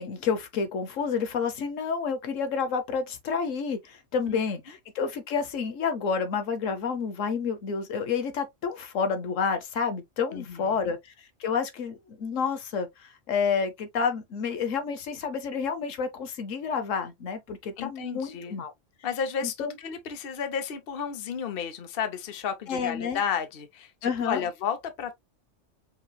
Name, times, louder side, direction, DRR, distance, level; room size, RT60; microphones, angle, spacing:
voice 1, 0.0-18.7 19.4-19.8 22.7-23.2 24.0-24.4, left 6 dB, 90° left, 1.3 m, -29 dB
voice 2, 10.3-10.9 17.8-18.6 19.0-23.9 24.2-25.1, left 7 dB, 55° left, 0.9 m, -32 dB
5.6 x 3.0 x 2.3 m
omnidirectional pair, 1.3 m